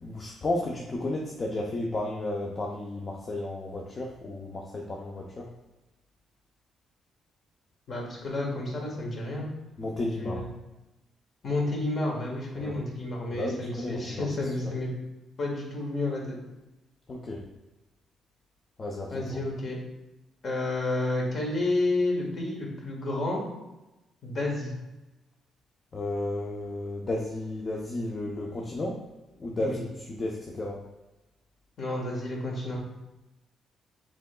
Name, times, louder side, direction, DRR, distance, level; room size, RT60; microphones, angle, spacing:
voice 1, 0.0-5.5 9.8-10.5 12.6-12.8 13.3-14.3 17.1-17.4 18.8-19.4 25.9-29.0 29.4-30.8, left 2 dB, 35° left, -1 dB, 0.6 m, -33 dB
voice 2, 7.9-9.5 10.2-10.5 11.4-14.9 15.4-16.4 19.1-19.8 20.4-23.4 24.2-24.7 29.6-29.8 31.8-32.8, left 2 dB, 50° left, -1 dB, 1.5 m, -30 dB
6.1 x 3.8 x 2.3 m, 1.0 s
cardioid pair, 90°, 0 cm